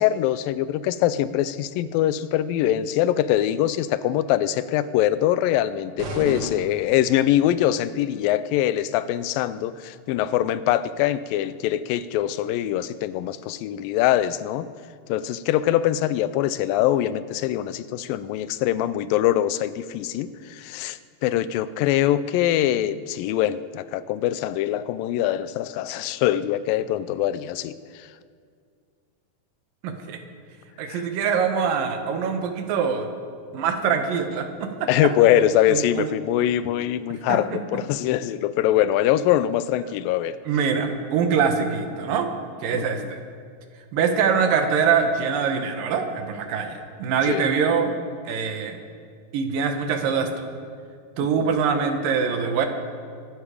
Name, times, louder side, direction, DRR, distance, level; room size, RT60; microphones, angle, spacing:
voice 1, 0.0-14.7 15.1-27.7 30.9-31.0 34.9-40.4 42.7-43.1 47.3-47.5 51.4-51.5, left 12 dB, 90° left, 15 dB, 2.3 m, -23 dB
sound 1, 6.0-7.5, right 1 dB, 50° right, 1.3 m, -34 dB
voice 2, 29.8-30.2 30.8-33.1 33.5-34.9 35.7-36.1 37.1-37.6 40.5-42.3 42.6-43.2 43.9-47.9 48.2-48.8 49.3-50.5 51.2-52.7, right 6 dB, 80° right, 6 dB, 3.0 m, -24 dB
24.0 x 12.0 x 5.0 m, 2.1 s
omnidirectional pair, 3.9 m